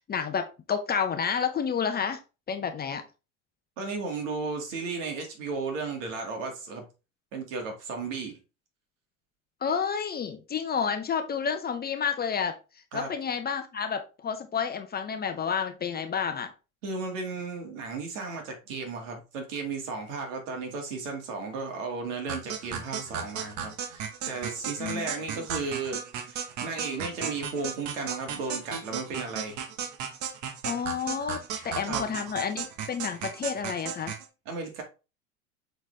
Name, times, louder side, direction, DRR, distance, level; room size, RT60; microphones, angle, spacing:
voice 1, 0.0-2.2 2.5-3.0 9.6-12.5 12.9-16.5 24.8-25.4 30.6-34.1, left 6 dB, 25° left, 0.8 m, -30 dB
voice 2, 3.8-6.8 7.3-8.4 12.9-13.1 16.8-26.0 26.2-29.6 31.5-32.1 34.5-34.8, right 4 dB, 65° right, 2.4 m, -34 dB
sound 1, 22.3-34.3, right 7 dB, 45° right, 1.2 m, -35 dB
7.3 x 4.2 x 3.4 m
hypercardioid pair, 80°, 41 cm